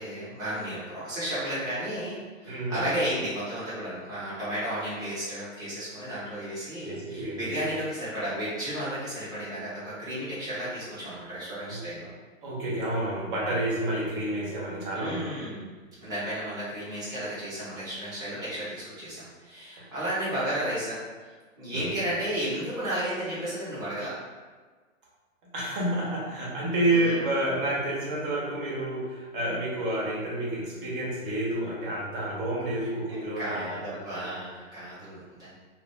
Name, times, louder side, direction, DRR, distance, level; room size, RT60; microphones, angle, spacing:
voice 1, 0.0-12.1 14.9-21.0 21.6-24.2 26.9-27.2 33.1-35.5, right 1 dB, 10° right, -11 dB, 1.0 m, -33 dB
voice 2, 2.4-3.0 6.8-7.6 11.7-11.8 12.4-15.2 21.7-21.9 25.5-34.2, right 1 dB, 40° right, -5 dB, 1.2 m, -29 dB
2.7 x 2.7 x 3.5 m, 1.4 s
hypercardioid pair, 150°, 40 cm